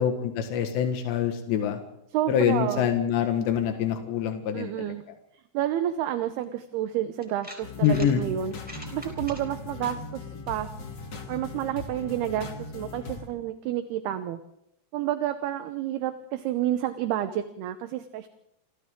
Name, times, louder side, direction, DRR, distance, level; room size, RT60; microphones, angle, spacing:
voice 1, 0.0-1.8 2.3-4.9 7.8-8.2, left 9 dB, 85° left, 5 dB, 3.8 m, -25 dB
voice 2, 2.1-2.9 4.5-5.0 5.5-10.7 11.3-14.4 14.9-18.3, right 12 dB, 75° right, 9 dB, 2.8 m, -30 dB
sound 1, 7.2-8.1 8.5-9.4, equal, ahead, 3.6 m, -43 dB
sound 2, 7.6-13.3, left 3 dB, 40° left, 1.6 m, -39 dB
28.5 x 25.5 x 3.8 m, 0.80 s
omnidirectional pair, 4.9 m